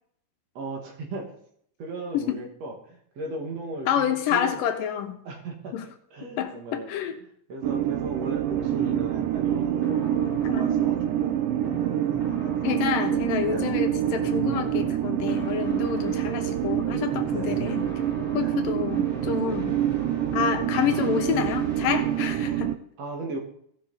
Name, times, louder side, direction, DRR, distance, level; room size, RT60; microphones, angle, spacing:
voice 1, 0.6-1.4 1.8-4.6 5.3-5.8 6.1-6.9 7.5-11.4 13.1-13.9 17.3-17.7 18.4-18.6 20.4-20.7 23.0-23.4, right 2 dB, 60° right, 1 dB, 2.4 m, -37 dB
voice 2, 3.9-5.2 5.7-5.9 6.4-7.2 10.4-10.8 12.6-17.9 18.3-19.8 20.3-22.8, left 9 dB, 85° left, 6 dB, 2.7 m, -28 dB
sound 1, 7.6-22.8, right 11 dB, 85° right, 2.2 m, -26 dB
sound 2, 8.4-22.2, left 2 dB, ahead, 3.4 m, -41 dB
16.5 x 5.7 x 4.0 m, 0.67 s
omnidirectional pair, 3.8 m